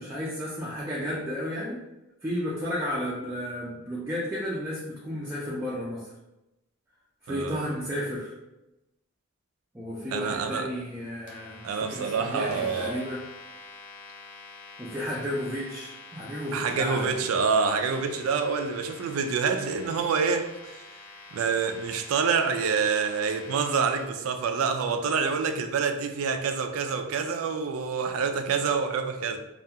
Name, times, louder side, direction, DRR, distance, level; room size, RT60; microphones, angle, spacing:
voice 1, 0.0-1.8 2.2-6.0 7.2-8.3 9.7-13.2 14.8-17.2, equal, 10° right, -7 dB, 0.4 m, -33 dB
voice 2, 7.3-7.6 10.1-10.7 11.6-13.0 16.5-20.8 21.3-29.4, right 5 dB, 80° right, 6 dB, 0.3 m, -27 dB
sound 1, 11.3-24.0, left 2 dB, 40° left, 0.6 m, -46 dB
2.3 x 2.3 x 2.8 m, 0.96 s
head